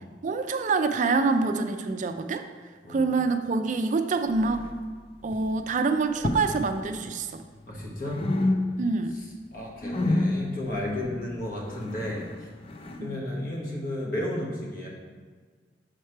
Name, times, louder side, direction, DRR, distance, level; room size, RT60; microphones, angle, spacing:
voice 1, 0.2-2.4 2.9-4.7 5.2-7.4 8.8-9.1 13.0-13.3, right 4 dB, 45° right, 8 dB, 0.4 m, -26 dB
sound 1, 4.3-5.0 5.2-5.6 6.1-6.7 7.0-9.0 9.3-13.1, left 1 dB, 30° left, 0.4 m, -30 dB
voice 2, 7.7-8.3 9.1-9.2 9.5-12.5 13.0-14.9, left 1 dB, 55° left, -2 dB, 1.2 m, -33 dB
6.5 x 3.3 x 4.4 m, 1.5 s
head